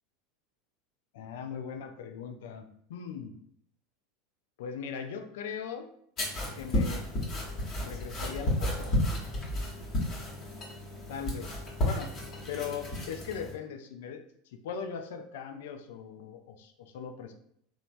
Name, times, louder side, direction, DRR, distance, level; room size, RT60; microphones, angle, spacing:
voice 1, 1.1-3.3 4.6-5.9 6.5-7.1 7.8-9.0 11.1-12.1 12.5-14.2 14.5-17.3, left 7 dB, 70° left, 6 dB, 0.3 m, -39 dB
sound 1, 6.2-13.5, left 1 dB, 40° left, 1.0 m, -32 dB
3.1 x 2.1 x 2.5 m, 0.70 s
hypercardioid pair, 80°, 0 cm